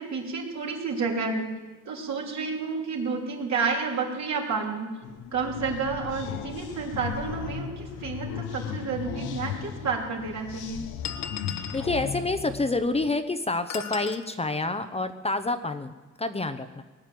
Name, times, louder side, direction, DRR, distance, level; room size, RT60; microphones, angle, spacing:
voice 1, 0.0-1.5 1.8-4.9 5.3-10.9, right 4 dB, 65° right, -1 dB, 3.4 m, -30 dB
sound 1, 5.0-13.1, left 8 dB, 90° left, 1.0 m, -36 dB
sound 2, 9.0-9.1 10.0-10.1 11.0-11.9 13.7-14.2, left 8 dB, 60° left, 1.2 m, -36 dB
voice 2, 11.7-16.8, left 2 dB, 20° left, 9 dB, 0.8 m, -28 dB
19.0 x 8.9 x 7.7 m, 1.2 s
cardioid pair, 90°, 30 cm